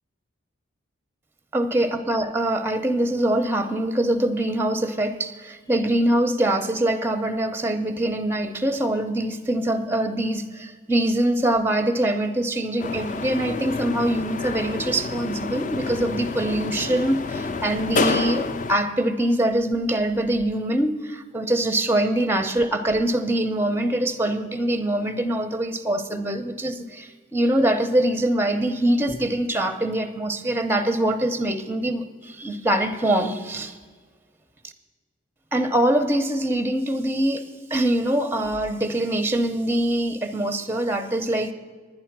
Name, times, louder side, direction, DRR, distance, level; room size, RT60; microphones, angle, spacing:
voice 1, 1.5-33.7 35.5-41.5, right 1 dB, 10° right, 10 dB, 0.5 m, -23 dB
sound 1, 12.8-18.8, left 3 dB, 40° left, 0.4 m, -28 dB
10.5 x 10.0 x 5.9 m, 1.5 s
head